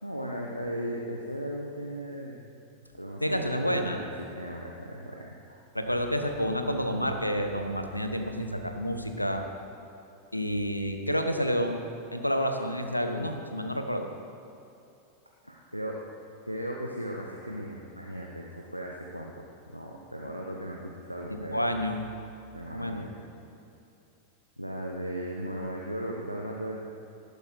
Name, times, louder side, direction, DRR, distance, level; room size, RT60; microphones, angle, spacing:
voice 1, 0.0-2.4 2.9-5.6 15.4-16.0 16.4-21.6 22.5-23.2 24.6-26.8, equal, 90° right, -1 dB, 0.9 m, -37 dB
voice 2, 3.2-4.0 5.7-9.4 10.3-11.8 12.1-14.1 21.3-22.0 22.6-23.0, equal, 90° left, 5 dB, 1.0 m, -29 dB
18.0 x 8.3 x 4.6 m, 2.7 s
figure-of-eight pair, 90°, 0 cm